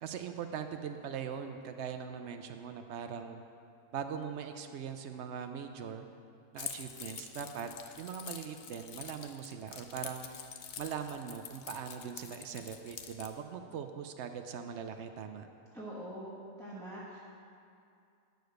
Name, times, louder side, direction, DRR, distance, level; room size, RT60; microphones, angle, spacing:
voice 1, 0.0-3.4 3.9-6.1 6.5-7.7 8.0-10.3 10.8-15.5, right 7 dB, 75° right, 7 dB, 0.6 m, -41 dB
Keys jangling, 6.6-13.3, left 7 dB, 60° left, 0.6 m, -46 dB
voice 2, 15.7-17.2, right 1 dB, ahead, -9 dB, 1.3 m, -44 dB
9.3 x 6.8 x 6.4 m, 2.5 s
omnidirectional pair, 1.7 m